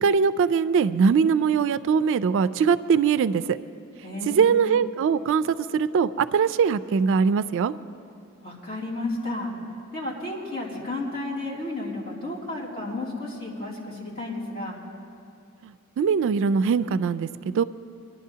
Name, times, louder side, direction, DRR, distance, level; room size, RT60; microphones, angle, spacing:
voice 1, 0.0-3.6 4.3-7.7 15.6-17.6, right 6 dB, 60° right, 15 dB, 0.3 m, -22 dB
voice 2, 4.0-4.6 8.4-9.5 9.9-14.7, left 2 dB, 45° left, -5 dB, 2.6 m, -32 dB
24.0 x 11.0 x 2.8 m, 2.4 s
head